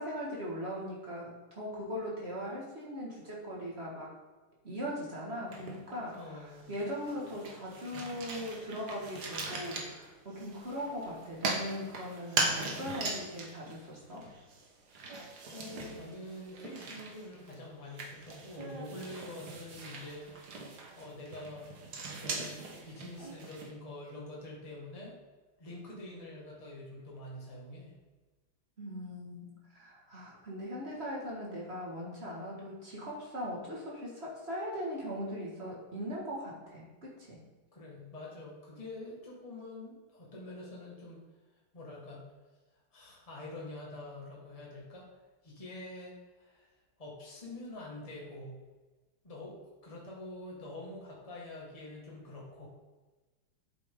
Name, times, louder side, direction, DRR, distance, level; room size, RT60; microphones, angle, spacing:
voice 1, 0.0-4.1 4.6-14.3 28.8-29.5 29.7-37.4, equal, 30° right, -4 dB, 2.1 m, -40 dB
sound 1, 5.5-6.2 6.6-23.7, right 3 dB, 55° right, 1.7 m, -40 dB
voice 2, 6.1-6.7 15.5-21.8 22.1-25.2 25.6-27.9 37.7-41.2 41.7-42.3 42.9-45.1 45.4-46.7 47.0-48.6 49.2-52.7, left 2 dB, 15° left, -4 dB, 1.9 m, -46 dB
9.4 x 7.4 x 3.8 m, 1.2 s
omnidirectional pair, 2.3 m